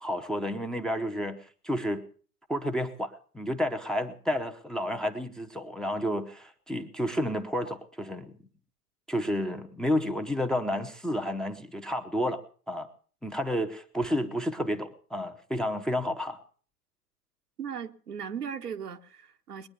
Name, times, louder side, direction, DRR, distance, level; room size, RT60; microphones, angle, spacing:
voice 1, 0.0-2.0 2.5-8.4 9.1-12.4 12.7-12.9 13.2-16.4, equal, ahead, 0.8 m, -31 dB
voice 2, 17.6-19.7, right 7 dB, 75° right, 1.3 m, -37 dB
20.5 x 9.8 x 6.7 m
figure-of-eight pair, 105°, 47 cm